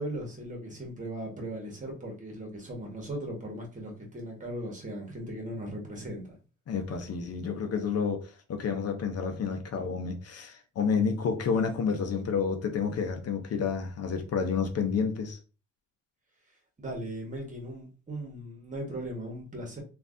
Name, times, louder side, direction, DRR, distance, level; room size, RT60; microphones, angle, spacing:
voice 1, 0.0-6.4 16.8-19.8, right 1 dB, 25° right, 1.4 m, -38 dB
voice 2, 6.7-15.4, left 5 dB, 55° left, 0.7 m, -30 dB
3.2 x 2.6 x 2.6 m
cardioid pair, 90°, 30 cm